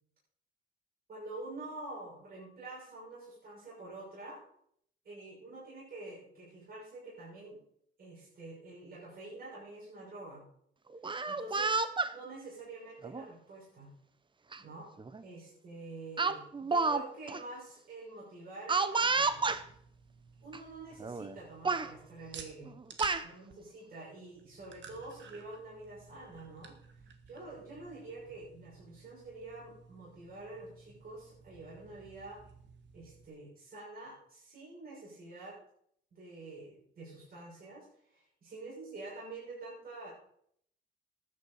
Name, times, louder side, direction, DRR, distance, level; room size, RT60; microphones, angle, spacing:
voice 1, 1.1-4.4 5.0-7.6 8.0-10.5 11.3-13.9 14.6-14.9 15.2-19.4 20.4-22.7 23.2-32.4 32.9-35.6 36.1-40.1, right 2 dB, 50° right, -6 dB, 6.5 m, -47 dB
Speech, 10.9-12.1 13.0-13.3 14.5-14.6 15.0-15.2 16.2-17.0 17.3-17.4 18.7-19.6 20.5-20.6 21.0-21.3 21.6-21.9 22.7-23.2, right 4 dB, 25° right, 0.9 m, -30 dB
sound 1, 19.0-33.3, right 6 dB, 65° right, 1.7 m, -53 dB
13.0 x 9.8 x 5.0 m, 0.68 s
cardioid pair, 90°, 20 cm